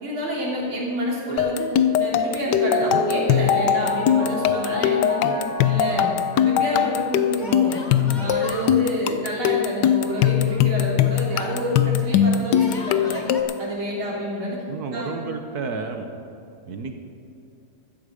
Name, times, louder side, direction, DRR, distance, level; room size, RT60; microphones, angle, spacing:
voice 1, 0.0-1.7 2.0-5.3 5.6-7.8 8.2-13.2 13.6-14.6 14.9-15.1, equal, 75° right, -3 dB, 3.9 m, -28 dB
sound 1, 1.4-13.7, left 10 dB, 70° left, 1.1 m, -21 dB
Mallet percussion, 2.2-7.2, equal, 55° left, 2.5 m, -30 dB
Yell, 4.1-5.0 5.3-5.4 7.4-8.8 10.1-11.5 12.4-13.4, left 3 dB, 30° left, 1.0 m, -40 dB
voice 2, 7.9-8.3 14.7-16.1 16.7-17.0, right 4 dB, 55° right, 6 dB, 1.3 m, -31 dB
15.5 x 13.0 x 5.0 m, 2.6 s
omnidirectional pair, 2.3 m